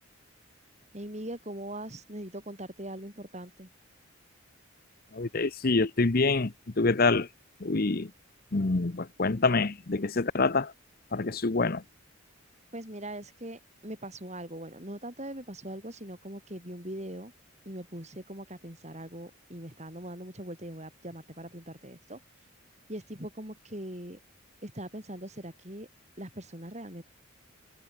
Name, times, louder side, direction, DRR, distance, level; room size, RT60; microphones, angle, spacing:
voice 1, 0.9-3.7 12.7-17.3 17.7-22.2 22.9-24.2 24.6-25.9 26.2-27.0, right 1 dB, 30° right, 7.1 m, -41 dB
voice 2, 5.1-7.3 7.6-8.1 8.5-10.7 11.1-11.8, left 3 dB, 45° left, 0.8 m, -26 dB
head